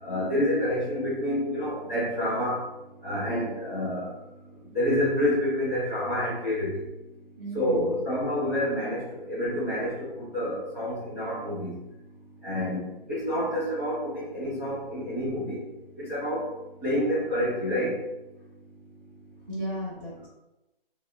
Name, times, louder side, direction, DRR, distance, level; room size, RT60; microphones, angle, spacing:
voice 1, 0.0-2.6 3.0-4.1 4.7-6.8 7.5-9.0 9.3-11.8 12.4-15.6 16.0-16.5 16.8-17.9, left 1 dB, 15° left, -10 dB, 0.6 m, -28 dB
voice 2, 7.4-8.0 19.5-20.3, equal, 20° right, -11 dB, 0.6 m, -35 dB
2.8 x 2.0 x 2.6 m, 0.98 s
hypercardioid pair, 170°, 29 cm